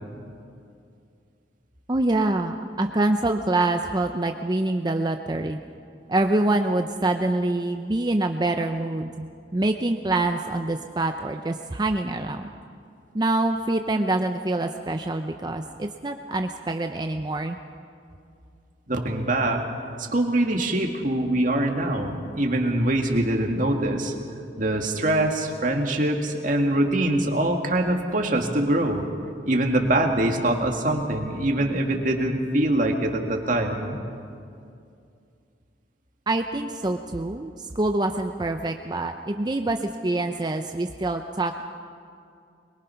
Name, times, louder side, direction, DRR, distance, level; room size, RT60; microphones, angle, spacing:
voice 1, 1.9-5.6 6.1-9.3 9.5-12.5 13.1-17.6 36.3-41.6, right 2 dB, 25° right, 6 dB, 0.6 m, -25 dB
voice 2, 18.9-19.6 20.0-24.1 24.6-29.1 29.5-34.0, right 1 dB, 50° right, 2 dB, 2.1 m, -23 dB
22.5 x 22.5 x 5.8 m, 2.4 s
head